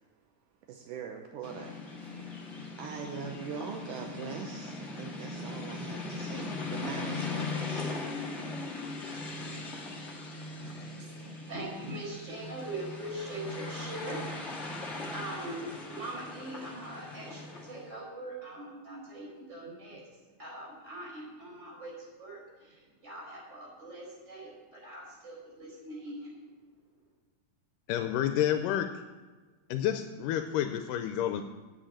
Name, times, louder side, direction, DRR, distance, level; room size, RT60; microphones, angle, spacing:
voice 1, 0.7-8.0 10.4-11.4, right 6 dB, 75° right, 3 dB, 2.2 m, -43 dB
sound 1, 1.4-17.9, left 3 dB, 45° left, 0.9 m, -39 dB
voice 2, 10.6-26.4, right 1 dB, 20° right, -4 dB, 4.6 m, -42 dB
voice 3, 27.9-28.9 29.7-31.4, left 11 dB, 85° left, 7 dB, 2.1 m, -29 dB
8.9 x 7.4 x 8.6 m, 1.3 s
omnidirectional pair, 3.9 m